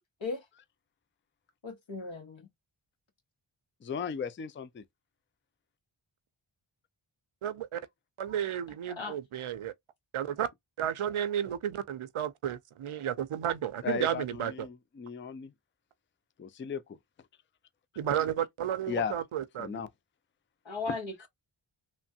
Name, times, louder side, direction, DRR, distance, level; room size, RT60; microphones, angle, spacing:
voice 1, 1.6-2.4 9.0-9.1 20.7-21.3, left 3 dB, 65° left, 1.1 m, -36 dB
voice 2, 3.8-4.8 13.8-15.5 16.4-17.0 18.9-19.2 19.6-19.9 20.9-21.0, left 6 dB, 25° left, 0.3 m, -36 dB
voice 3, 7.4-7.8 8.2-9.7 10.1-10.5 10.8-14.7 18.0-19.8, right 10 dB, 80° right, 0.5 m, -32 dB
3.1 x 2.2 x 2.6 m
wide cardioid pair, 50°, 49 cm